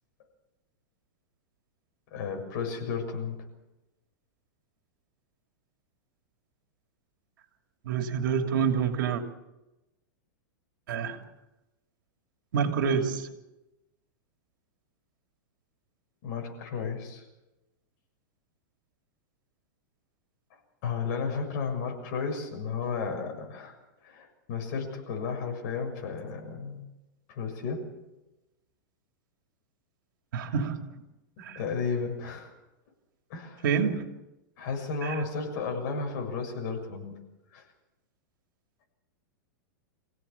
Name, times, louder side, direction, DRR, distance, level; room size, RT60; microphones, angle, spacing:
voice 1, 2.1-3.5 16.2-17.2 20.8-23.7 24.0-26.9 27.3-27.9 31.4-32.5 33.3-33.7 34.6-37.2 37.5-37.6, left 5 dB, 50° left, 3 dB, 6.9 m, -33 dB
voice 2, 7.8-9.2 10.9-11.2 12.5-13.3 30.3-30.8 31.4-31.6 33.6-34.0 35.0-35.2, right 6 dB, 75° right, 5 dB, 2.8 m, -27 dB
26.5 x 17.0 x 7.1 m, 1.0 s
supercardioid pair, 150°, 11 cm